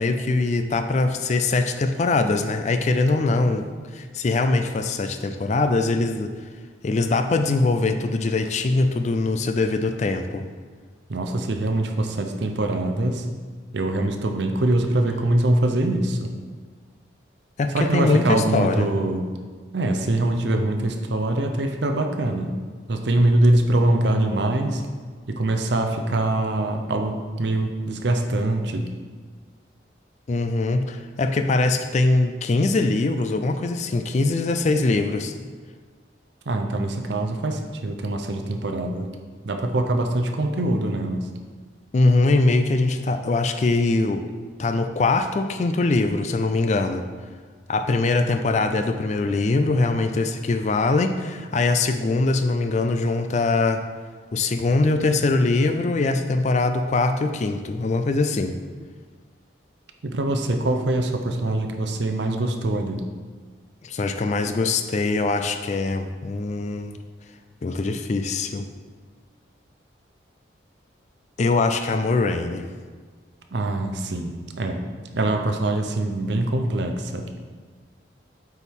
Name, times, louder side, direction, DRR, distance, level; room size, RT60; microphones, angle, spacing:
voice 1, 0.0-3.7 3.9-6.3 6.8-10.5 17.6-18.9 30.3-35.3 41.9-44.2 44.6-47.0 47.7-53.8 54.3-58.5 63.8-67.0 67.6-68.6 71.4-72.7, left 3 dB, 35° left, 8 dB, 0.3 m, -22 dB
voice 2, 11.1-13.3 13.7-16.3 17.7-19.2 19.7-22.5 22.9-24.8 25.3-28.9 36.5-39.1 39.4-41.3 60.0-63.0 73.5-74.8 75.1-77.3, right 1 dB, 65° right, 5 dB, 0.6 m, -23 dB
8.0 x 4.6 x 3.6 m, 1.5 s
head